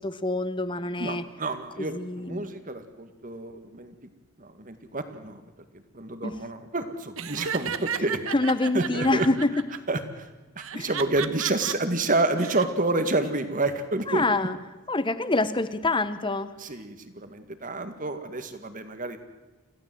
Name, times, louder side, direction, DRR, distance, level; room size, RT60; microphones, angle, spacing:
voice 1, 0.0-1.2 1.8-2.5 6.2-6.3 8.3-9.5 10.7-10.9 14.1-14.6 14.9-16.5, left 2 dB, 20° left, 14 dB, 1.0 m, -26 dB
voice 2, 1.0-3.9 4.4-5.4 5.9-8.2 8.7-9.3 9.9-10.3 10.6-14.2 16.6-19.2, right 2 dB, 35° right, 9 dB, 1.9 m, -29 dB
Laughter, 7.2-9.8 10.6-11.7 12.2-12.7, right 7 dB, 60° right, 1.1 m, -33 dB
27.5 x 16.0 x 7.8 m, 1.2 s
head